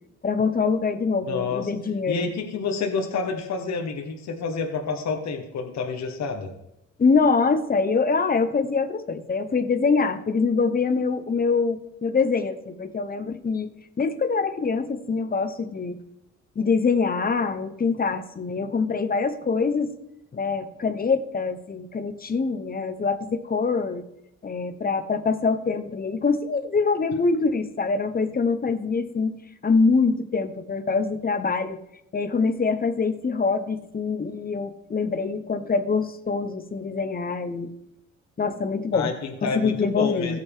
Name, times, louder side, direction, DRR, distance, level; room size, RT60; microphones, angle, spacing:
voice 1, 0.2-2.3 7.0-13.7 14.0-16.0 16.6-19.9 20.3-24.0 24.4-29.4 29.6-31.8 32.1-37.7 38.4-39.1 39.4-40.4, left 4 dB, 30° left, 11 dB, 1.1 m, -24 dB
voice 2, 1.2-1.7 2.1-6.5 38.9-40.4, left 4 dB, 60° left, 3 dB, 1.6 m, -28 dB
16.0 x 6.3 x 3.7 m, 0.82 s
cardioid pair, 90°, 30 cm